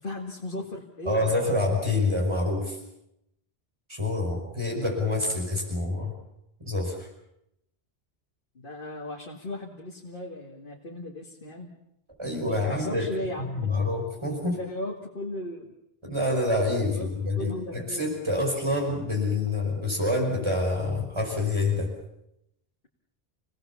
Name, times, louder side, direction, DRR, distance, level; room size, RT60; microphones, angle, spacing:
voice 1, 0.0-1.3 5.3-5.4 8.6-11.7 12.3-13.9 14.6-15.7 16.8-17.1 17.4-18.0, left 1 dB, 55° left, -1 dB, 2.4 m, -36 dB
voice 2, 1.1-2.8 3.9-6.1 6.6-7.0 12.2-13.1 13.4-14.6 16.0-21.9, left 2 dB, 25° right, 0 dB, 5.4 m, -27 dB
28.0 x 19.0 x 7.1 m, 0.82 s
omnidirectional pair, 1.1 m